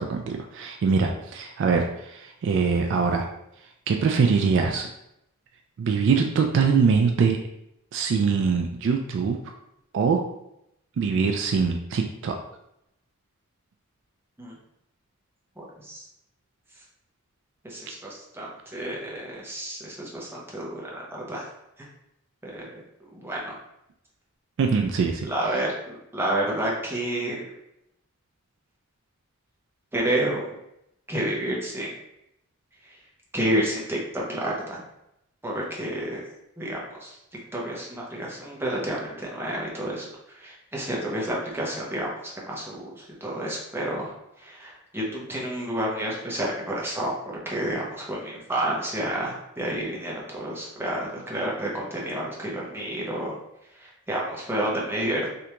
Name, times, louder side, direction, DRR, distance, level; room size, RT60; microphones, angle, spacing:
voice 1, 0.0-3.3 3.9-4.9 5.8-7.4 7.9-9.4 9.9-10.2 11.0-12.4 24.6-25.3, right 5 dB, 60° right, 4 dB, 0.3 m, -23 dB
voice 2, 15.6-16.0 17.6-21.4 22.4-22.8 23.1-23.5 25.2-27.5 29.9-30.5 31.1-31.9 33.3-34.8 35.4-36.2 36.6-37.1 37.5-42.1 42.4-44.1 44.4-47.1 47.5-53.4 53.8-55.3, right 1 dB, 10° right, -4 dB, 0.8 m, -30 dB
3.3 x 2.5 x 2.9 m, 0.80 s
head